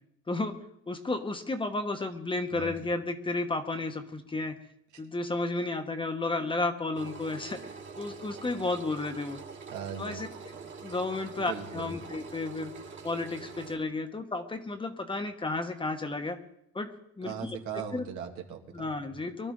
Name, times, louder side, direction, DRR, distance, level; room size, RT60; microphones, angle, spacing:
voice 1, 0.3-0.6 0.9-4.6 5.0-7.6 8.0-9.4 10.0-10.3 10.8-12.7 13.0-16.4 16.7-16.9 17.2-17.6 17.9-18.0 18.7-19.5, left 2 dB, 15° left, 6 dB, 1.2 m, -32 dB
voice 2, 2.5-2.9 9.7-10.3 11.4-11.9 17.2-19.2, right 7 dB, 70° right, 3 dB, 2.1 m, -39 dB
Engine, 7.0-13.8, right 5 dB, 40° right, 2.2 m, -45 dB
23.5 x 12.5 x 3.8 m, 0.74 s
cardioid pair, 130°, 30 cm